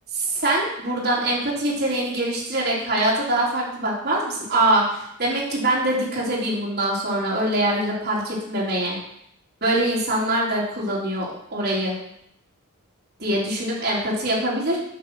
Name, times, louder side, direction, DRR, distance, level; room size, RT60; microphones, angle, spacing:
voice 1, 0.1-9.0 9.6-12.0 13.2-14.8, right 1 dB, 45° right, -5 dB, 3.5 m, -23 dB
9.3 x 5.9 x 6.2 m, 0.73 s
head